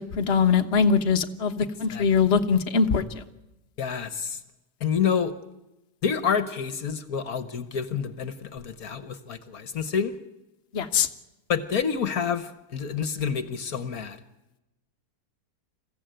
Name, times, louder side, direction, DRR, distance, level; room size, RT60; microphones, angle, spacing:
voice 1, 0.0-3.2 10.7-11.1, left 6 dB, 45° left, 5 dB, 1.4 m, -22 dB
voice 2, 3.8-4.4 4.8-5.3 6.0-10.1 11.5-14.2, left 7 dB, 65° left, 12 dB, 1.6 m, -28 dB
28.0 x 15.5 x 9.1 m, 0.98 s
omnidirectional pair, 1.7 m